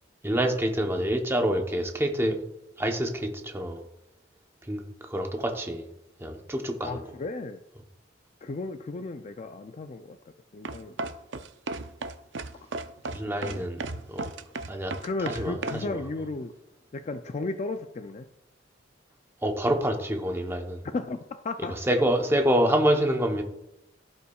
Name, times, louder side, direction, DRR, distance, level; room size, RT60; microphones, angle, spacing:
voice 1, 0.2-2.4 2.8-3.8 4.7-4.8 5.1-5.8 6.2-7.0 13.1-14.3 14.7-14.9 15.2-16.0 19.4-20.8 21.9-23.4, right 1 dB, 15° right, 4 dB, 0.8 m, -26 dB
voice 2, 6.8-7.6 8.4-10.2 10.5-11.0 13.5-13.7 15.0-16.5 16.9-18.2 20.9-21.7, left 3 dB, 35° left, 8 dB, 0.4 m, -34 dB
sound 1, 10.6-15.8, right 3 dB, 65° right, 0.5 m, -34 dB
15.5 x 5.6 x 2.3 m, 0.86 s
head